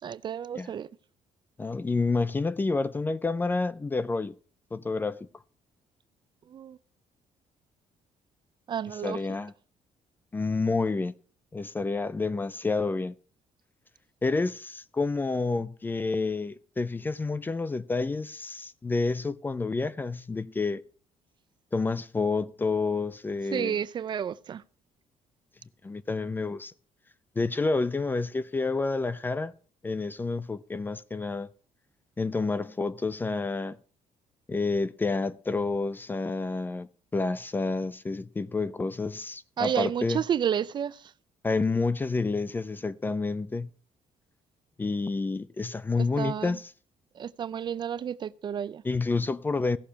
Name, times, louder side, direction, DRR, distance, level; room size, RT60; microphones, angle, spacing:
voice 1, 0.0-0.9 6.5-6.8 8.7-9.2 23.5-24.6 39.6-41.1 46.0-46.6 47.2-48.8, right 8 dB, 40° right, 0.4 m, -31 dB
voice 2, 1.6-4.3 4.7-5.3 9.0-9.5 10.3-11.1 11.5-13.1 14.2-20.8 21.7-23.8 25.8-26.7 27.4-29.5 29.8-31.5 32.2-33.8 34.5-40.2 41.4-43.7 44.8-46.7 48.8-49.8, left 3 dB, 15° left, 0.4 m, -29 dB
16.0 x 6.6 x 5.7 m
cardioid pair, 145°, 12 cm